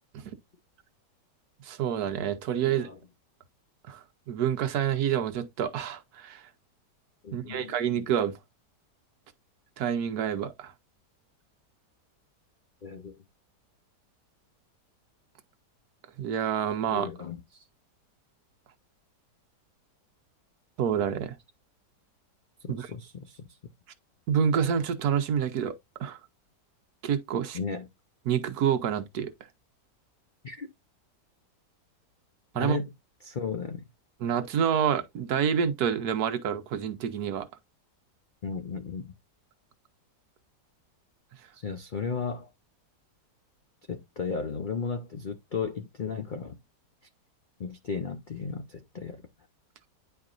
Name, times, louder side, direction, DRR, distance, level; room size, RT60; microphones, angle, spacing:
voice 1, 1.6-2.9 3.9-4.0 4.3-6.4 7.3-8.3 9.8-10.7 16.2-17.1 20.8-21.4 22.7-22.9 24.3-25.7 26.0-26.2 27.0-27.6 28.3-29.3 32.5-32.8 34.2-37.5, right 8 dB, 65° right, 1.3 m, -28 dB
voice 2, 2.7-3.0 7.2-7.7 12.8-13.2 16.9-17.6 22.6-23.6 27.5-27.9 30.4-30.7 32.6-32.9 33.2-33.8 38.4-39.1 41.5-42.5 43.9-46.5 47.6-49.2, left 5 dB, 85° left, 0.4 m, -35 dB
9.6 x 4.5 x 2.5 m
omnidirectional pair, 1.9 m